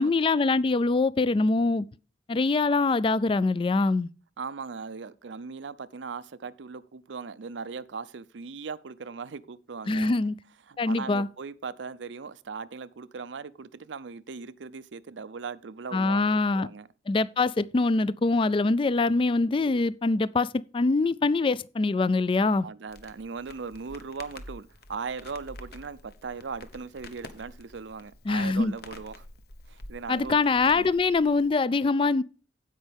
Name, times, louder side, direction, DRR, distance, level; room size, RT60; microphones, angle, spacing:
voice 1, 0.0-1.8 2.3-4.1 9.9-10.3 10.8-11.3 15.9-16.7 17.1-22.7 28.3-28.7 30.1-32.2, left 3 dB, 30° left, 0.3 m, -24 dB
voice 2, 4.4-10.1 10.7-16.9 22.6-29.3 29.7-30.4 30.7-30.9, right 5 dB, 85° right, 0.6 m, -39 dB
Crackle, 22.9-31.5, left 2 dB, 60° left, 1.0 m, -48 dB
16.0 x 5.4 x 3.4 m
head